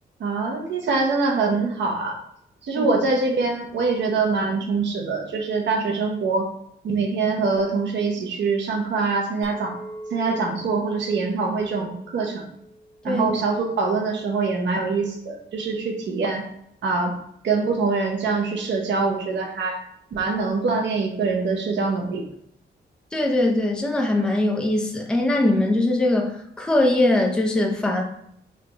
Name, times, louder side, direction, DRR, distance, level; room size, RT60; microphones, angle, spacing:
voice 1, 0.2-2.2 2.6-6.5 6.8-9.8 10.1-12.5 13.0-16.4 16.8-17.1 17.4-19.8 20.1-22.2, right 4 dB, 75° right, 1 dB, 0.7 m, -24 dB
Chink clink, 9.4-13.9, right 1 dB, 55° left, 1.1 m, -43 dB
voice 2, 23.1-26.3 26.6-28.0, left 1 dB, 5° left, 0 dB, 0.5 m, -21 dB
3.2 x 2.3 x 3.9 m, 0.71 s
wide cardioid pair, 140°, 19 cm